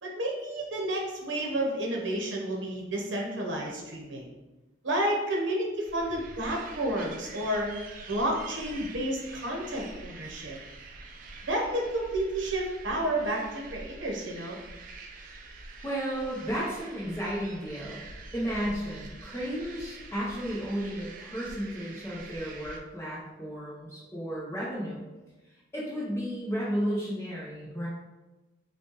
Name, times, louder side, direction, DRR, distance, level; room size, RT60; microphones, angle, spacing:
voice 1, 0.0-4.3 4.8-7.7 8.1-10.6 11.4-14.6, right 1 dB, 75° right, -1 dB, 0.8 m, -31 dB
sound 1, 5.8-22.8, right 3 dB, 45° right, 0.5 m, -46 dB
voice 2, 15.8-18.0 18.3-25.0 25.7-27.9, equal, 15° left, -7 dB, 0.8 m, -33 dB
5.8 x 2.3 x 2.9 m, 1.1 s
head